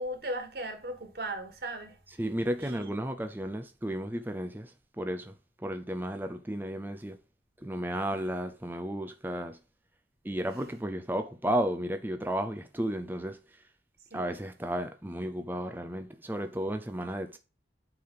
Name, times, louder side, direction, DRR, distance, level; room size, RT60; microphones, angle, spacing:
voice 1, 0.0-2.0 2.6-2.9 14.1-14.4, right 1 dB, 60° right, 1.8 m, -37 dB
voice 2, 2.2-4.7 5.0-5.3 5.6-7.2 7.6-9.6 10.2-13.4 14.1-17.4, right 1 dB, 10° right, 0.5 m, -33 dB
8.6 x 3.5 x 5.6 m
head